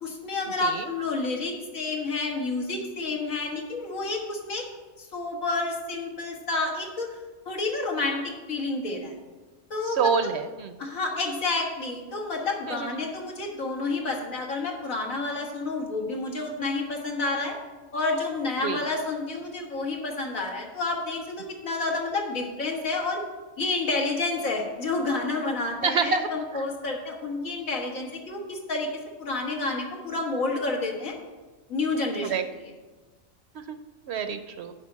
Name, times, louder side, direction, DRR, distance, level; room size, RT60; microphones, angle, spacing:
voice 1, 0.0-4.7 5.0-7.2 7.5-9.1 9.7-10.3 10.8-17.5 17.9-23.2 23.6-28.9 29.2-31.1 31.7-32.7, left 3 dB, 90° left, 0 dB, 2.0 m, -29 dB
voice 2, 10.0-10.7 12.7-12.9 18.6-18.8 25.8-26.3 26.5-26.6 32.3-32.4 33.7-33.8 34.1-34.7, right 6 dB, 60° right, 9 dB, 0.8 m, -26 dB
7.3 x 5.7 x 7.4 m, 1.2 s
omnidirectional pair, 1.4 m